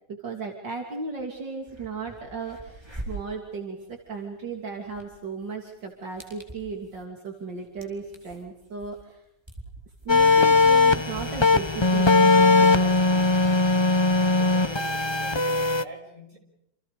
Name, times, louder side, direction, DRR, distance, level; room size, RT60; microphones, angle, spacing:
voice 1, 0.1-9.2 10.1-13.3, right 4 dB, 75° right, 2 dB, 3.7 m, -36 dB
sound 1, 1.2-1.3 1.6-15.0, right 2 dB, 15° right, 4.9 m, -46 dB
sound 2, 10.1-15.8, left 2 dB, 25° left, 0.6 m, -19 dB
voice 2, 14.2-16.4, right 1 dB, 45° right, 2 dB, 6.5 m, -45 dB
29.5 x 27.5 x 5.1 m, 0.79 s
omnidirectional pair, 2.0 m